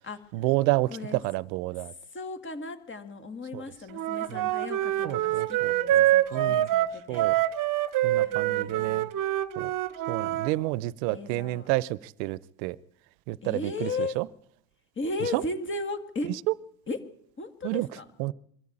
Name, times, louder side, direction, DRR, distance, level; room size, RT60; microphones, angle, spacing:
voice 1, 0.3-1.9 3.5-3.6 4.3-4.5 5.0-6.7 7.1-7.3 8.0-9.1 9.6-9.7 10.1-12.8 13.3-13.9 14.2-14.3 15.3-15.4 17.6-17.9 18.2-18.3, right 19 dB, 90° right, 0.8 m, -30 dB
voice 2, 2.1-7.3 8.2-9.1 11.1-11.7 13.4-14.2 15.0-16.3 16.9-17.0 17.4-18.1, left 3 dB, 25° left, 2.1 m, -36 dB
Wind instrument woodwind instrument, 3.9-10.5, right 13 dB, 40° right, 1.1 m, -26 dB
22.5 x 13.5 x 8.8 m
cardioid pair, 130°, 48 cm